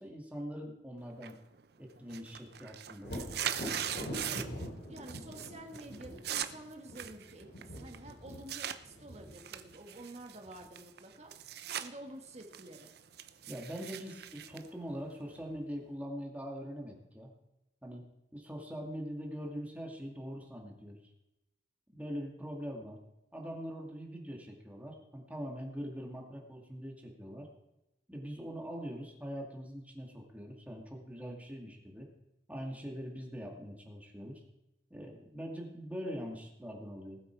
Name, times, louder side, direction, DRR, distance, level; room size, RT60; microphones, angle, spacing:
voice 1, 0.0-1.4 1.8-3.2 3.6-4.1 13.5-17.3 17.8-21.0 21.9-23.0 23.3-27.5 28.1-32.1 32.5-34.4 34.9-37.2, equal, 10° right, 0 dB, 2.4 m, -43 dB
sound 1, 1.2-1.6 2.0-4.7 5.0-5.5 5.7-8.8 9.3-11.9 12.2-15.4, right 10 dB, 65° right, 0.8 m, -40 dB
Thunder, 3.0-10.7 14.3-14.4 14.9-15.8, equal, 90° left, 4.6 m, -45 dB
voice 2, 3.9-4.4 4.9-12.9, right 1 dB, 40° right, 4 dB, 1.7 m, -49 dB
19.5 x 8.2 x 4.7 m, 0.93 s
head